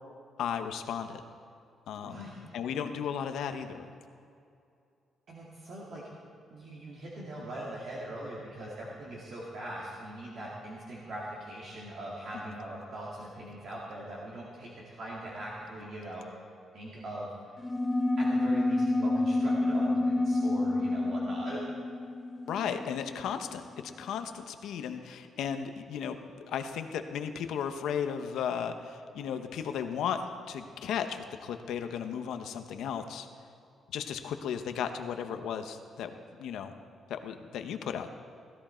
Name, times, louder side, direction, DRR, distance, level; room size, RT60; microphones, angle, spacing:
voice 1, 0.4-1.2 1.9-2.3 2.5-3.9 12.3-12.4 22.5-26.2 26.5-30.2 30.5-33.3 33.9-36.1 36.4-36.7 37.1-38.1, left 8 dB, 85° left, 7 dB, 0.9 m, -35 dB
voice 2, 1.9-2.6 5.3-6.0 6.5-16.3 16.7-17.3 18.2-21.6, right 1 dB, 50° right, -5 dB, 2.0 m, -41 dB
sound 1, 17.6-23.5, left 2 dB, 10° left, 0.5 m, -29 dB
16.5 x 14.0 x 4.4 m, 2.5 s
cardioid pair, 165°, 0 cm